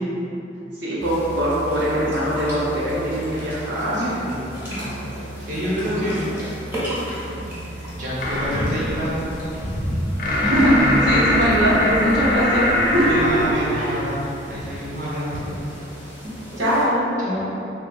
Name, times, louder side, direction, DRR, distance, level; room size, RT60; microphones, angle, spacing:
voice 1, 0.8-4.1 5.8-6.2 7.4-7.5 10.4-14.0 16.2-16.3 16.6-17.1, equal, 75° right, -8 dB, 0.9 m, -22 dB
sound 1, 1.0-16.8, equal, 10° right, 0.9 m, -33 dB
voice 2, 3.9-4.4 4.7-4.9 5.4-6.2 7.9-9.2 12.9-14.2 14.5-15.5 17.2-17.4, equal, 45° right, -8 dB, 0.8 m, -28 dB
sound 2, 8.2-13.5, left 1 dB, 45° left, 0.4 m, -22 dB
3.2 x 2.5 x 2.6 m, 2.9 s
head